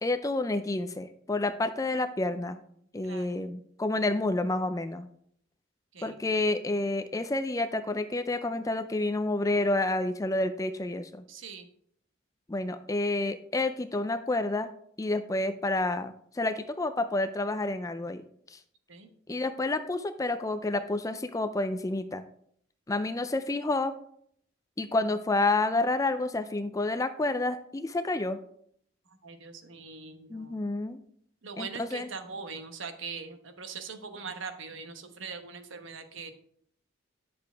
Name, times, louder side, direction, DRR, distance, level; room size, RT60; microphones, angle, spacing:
voice 1, 0.0-2.6 2.9-5.1 6.0-11.2 12.5-14.7 15.0-18.6 19.3-22.2 22.9-23.9 24.8-28.4 30.3-31.0 31.6-32.1, left 2 dB, 15° left, 9 dB, 0.4 m, -29 dB
voice 2, 2.8-3.4 5.9-6.2 11.3-11.7 18.9-19.1 29.1-30.6 31.4-36.3, right 5 dB, 80° right, 8 dB, 1.0 m, -42 dB
10.5 x 6.8 x 3.4 m, 0.67 s
head